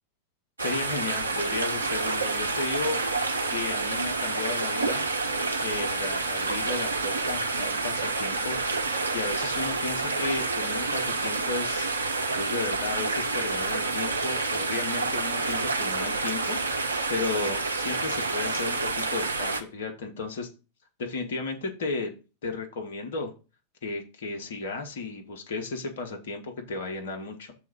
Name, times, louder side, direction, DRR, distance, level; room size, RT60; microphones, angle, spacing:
voice 1, 0.6-3.2 3.5-5.1 5.6-16.6 16.8-20.5 21.0-23.3 23.8-27.5, left 3 dB, 55° left, 4 dB, 1.3 m, -34 dB
sound 1, 0.6-19.6, right 3 dB, 75° right, 0.7 m, -28 dB
6.9 x 3.5 x 5.9 m, 0.32 s
figure-of-eight pair, 90°, 0 cm